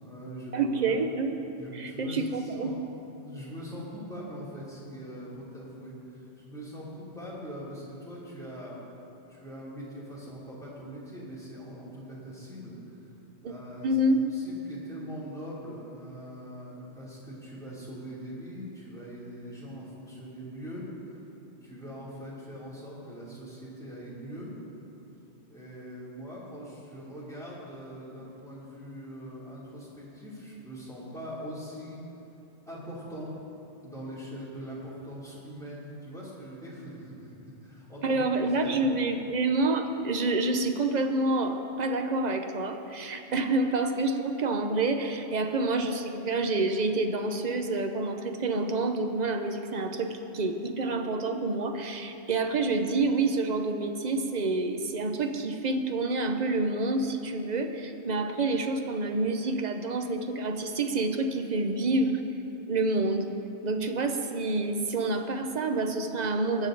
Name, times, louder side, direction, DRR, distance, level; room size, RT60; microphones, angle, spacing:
voice 1, 0.0-0.9 1.6-2.7 3.2-8.8 9.3-12.8 13.4-14.0 14.3-21.2 21.6-24.5 25.5-32.0 32.7-33.4 33.8-37.4 37.6-38.2 38.6-38.9, equal, 5° left, -8 dB, 3.0 m, -42 dB
voice 2, 0.5-1.4 1.7-2.8 13.4-13.5 13.8-14.2 38.0-62.2 62.7-63.3 63.6-66.7, right 2 dB, 45° right, 5 dB, 0.7 m, -28 dB
20.0 x 7.4 x 3.9 m, 2.9 s
omnidirectional pair, 1.2 m